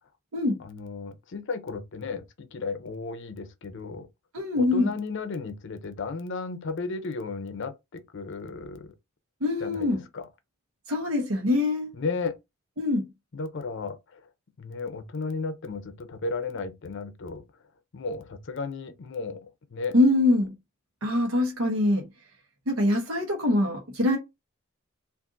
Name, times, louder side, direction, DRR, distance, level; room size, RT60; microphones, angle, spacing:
voice 1, 0.6-4.1 4.5-8.9 9.6-10.3 11.9-12.3 13.3-14.2 14.6-17.4 17.9-19.9, left 4 dB, 60° left, 0.6 m, -34 dB
voice 2, 4.3-4.9 9.4-10.0 10.9-11.9 12.8-13.1 19.9-20.5 21.0-22.1 22.7-24.2, left 2 dB, 80° right, 0.9 m, -24 dB
2.5 x 2.5 x 3.7 m
head